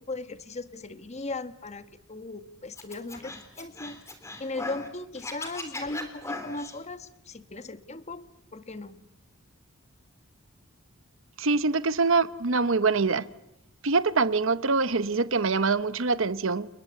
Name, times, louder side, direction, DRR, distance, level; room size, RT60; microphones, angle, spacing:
voice 1, 0.1-4.0 4.4-8.2 8.5-9.0, left 2 dB, 30° left, 1.3 m, -37 dB
Scratching (performance technique), 2.8-4.9 5.2-6.8, left 2 dB, 15° left, 3.4 m, -38 dB
voice 2, 11.4-13.3 13.8-16.7, right 4 dB, 65° right, 0.9 m, -24 dB
29.5 x 20.5 x 8.5 m
head